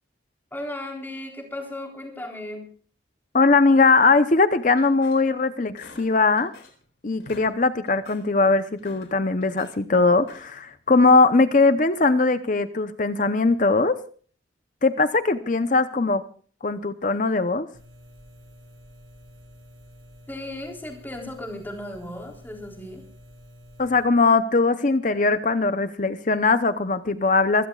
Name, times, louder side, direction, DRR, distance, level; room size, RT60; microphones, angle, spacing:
voice 1, 0.5-2.7 20.3-23.0, left 1 dB, 10° left, 1 dB, 3.7 m, -35 dB
voice 2, 3.3-6.5 7.0-14.0 14.8-16.2 16.6-17.7 23.8-27.7, left 3 dB, 40° left, 11 dB, 0.7 m, -20 dB
sound 1, 4.8-5.4 5.8-6.9 7.1-7.5 7.9-8.3 8.7-9.8 10.2-10.7, left 3 dB, 85° left, 3.8 m, -48 dB
sound 2, 17.7-24.0, left 1 dB, 60° right, 7.2 m, -49 dB
26.0 x 16.5 x 2.4 m, 0.42 s
head